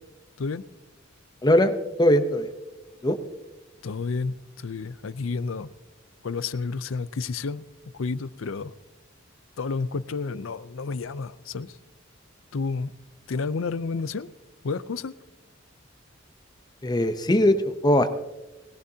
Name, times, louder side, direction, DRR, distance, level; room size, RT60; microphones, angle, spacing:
voice 1, 1.4-1.7 2.0-2.5 3.0-3.2 16.8-18.1, left 1 dB, 20° left, 9 dB, 0.7 m, -20 dB
voice 2, 3.8-4.3 4.6-5.7 6.2-7.6 8.0-8.7 9.6-11.7 12.5-12.9 13.3-14.3 14.6-15.1, left 4 dB, 85° left, 16 dB, 0.5 m, -30 dB
20.0 x 16.0 x 2.8 m, 1.1 s
head